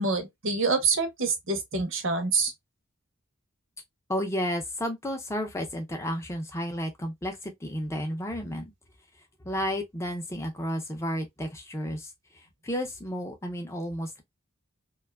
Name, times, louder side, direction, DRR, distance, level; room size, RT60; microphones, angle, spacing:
voice 1, 0.0-2.5, right 4 dB, 60° right, 0.7 m, -26 dB
voice 2, 4.1-8.7 9.4-14.2, equal, 15° left, 0.4 m, -32 dB
2.5 x 2.2 x 2.2 m
head